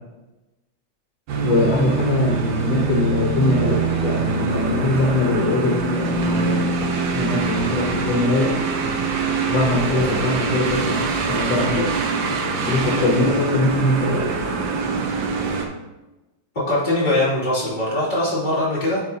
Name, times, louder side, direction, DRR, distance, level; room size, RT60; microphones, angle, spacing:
sound 1, 1.3-15.6, right 3 dB, 75° right, 1.5 m, -23 dB
voice 1, 1.4-6.6 7.1-8.6 9.5-11.9 12.7-14.3, left 2 dB, 70° left, -1 dB, 1.5 m, -22 dB
voice 2, 16.7-19.0, left 1 dB, 25° left, -8 dB, 2.6 m, -22 dB
10.0 x 4.1 x 2.7 m, 1.0 s
omnidirectional pair, 2.1 m